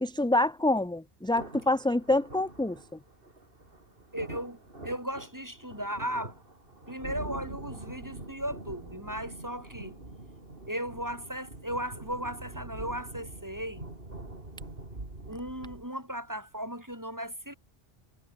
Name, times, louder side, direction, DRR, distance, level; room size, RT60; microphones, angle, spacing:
voice 1, 0.0-3.0, left 2 dB, 5° left, 0.5 m, -27 dB
sound 1, 1.3-15.8, right 2 dB, 65° right, 4.3 m, -44 dB
voice 2, 4.1-6.4 6.9-10.0 10.7-13.9 15.3-17.5, equal, 20° right, 7.1 m, -36 dB
omnidirectional pair, 1.0 m